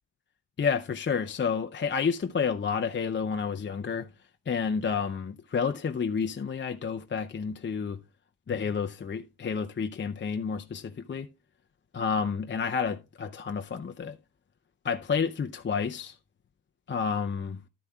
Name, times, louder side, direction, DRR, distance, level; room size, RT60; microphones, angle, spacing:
voice 1, 0.6-4.1 4.5-8.0 8.5-11.3 11.9-14.2 14.8-16.2 16.9-17.6, left 6 dB, 25° left, 0.5 m, -30 dB
12.0 x 9.6 x 2.3 m
cardioid pair, 80°, 46 cm